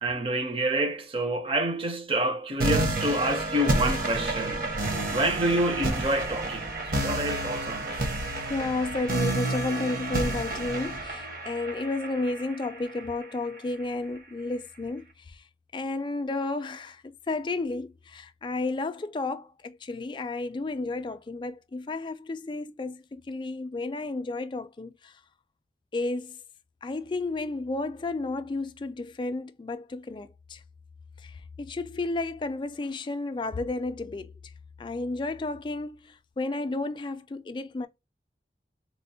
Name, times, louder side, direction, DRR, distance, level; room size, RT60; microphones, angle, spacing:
voice 1, 0.0-4.7 5.1-8.0, right 1 dB, 30° right, 0.6 m, -28 dB
sound 1, 2.6-13.6, right 2 dB, 50° right, 0.9 m, -30 dB
voice 2, 8.5-15.4 15.7-25.1 25.9-26.4 26.8-30.6 31.2-34.3 34.8-37.9, left 2 dB, 25° left, 0.3 m, -32 dB
4.2 x 2.0 x 2.7 m
head